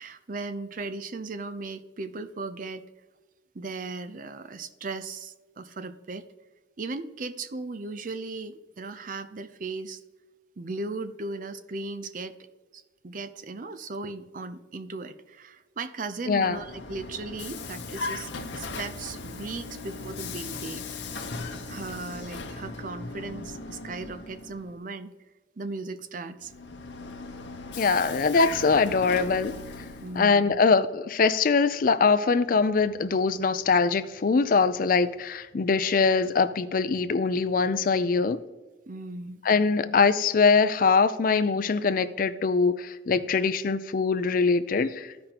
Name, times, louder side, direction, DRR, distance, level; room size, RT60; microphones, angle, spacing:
voice 1, 0.0-2.8 3.5-6.3 6.8-10.0 10.6-12.4 12.7-20.9 21.1-25.1 25.6-26.5 30.0-30.6 38.9-39.4, right 3 dB, 45° right, 11 dB, 0.5 m, -37 dB
Vehicle, 16.2-24.7 26.4-30.3, left 4 dB, 80° left, 0.8 m, -37 dB
voice 2, 16.3-16.6 27.8-29.6 30.1-38.4 39.5-45.1, left 4 dB, 50° left, 12 dB, 0.4 m, -23 dB
14.0 x 5.2 x 2.9 m, 1.2 s
head